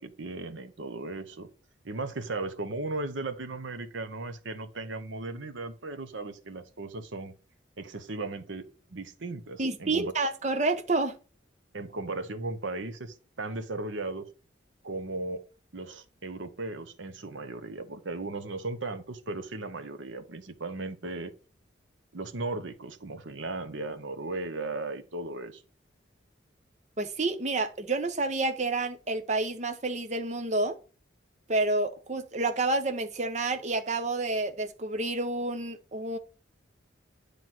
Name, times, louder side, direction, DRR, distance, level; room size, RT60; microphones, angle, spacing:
voice 1, 0.0-1.5 1.8-7.3 7.8-8.6 8.9-10.1 11.7-14.3 14.8-15.4 15.7-21.3 22.1-25.6, right 2 dB, 75° right, 1.0 m, -36 dB
voice 2, 9.6-11.2 27.0-30.8 31.5-36.2, right 2 dB, 35° right, 0.8 m, -29 dB
9.3 x 3.4 x 6.0 m
head